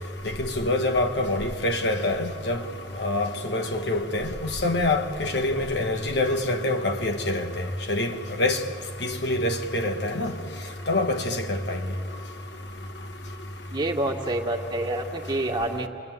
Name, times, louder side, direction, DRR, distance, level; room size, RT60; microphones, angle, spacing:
voice 1, 0.4-2.6 3.0-4.3 4.6-7.5 7.9-8.1 8.4-8.6 9.2-10.3 10.9-11.8, left 2 dB, 65° left, 1.5 m, -25 dB
voice 2, 13.7-15.9, right 1 dB, 25° right, 2.0 m, -27 dB
29.0 x 22.5 x 9.2 m
head